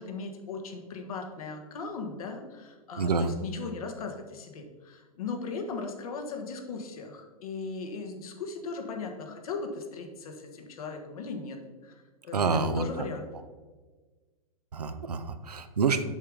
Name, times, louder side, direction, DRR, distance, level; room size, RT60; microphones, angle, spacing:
voice 1, 0.0-11.6 11.8-13.3, left 4 dB, 65° left, 4 dB, 1.5 m, -38 dB
voice 2, 3.0-3.3 12.3-12.8 14.7-16.0, right 4 dB, 85° right, 10 dB, 0.7 m, -27 dB
7.4 x 5.9 x 5.0 m, 1.4 s
hypercardioid pair, 110°, 20 cm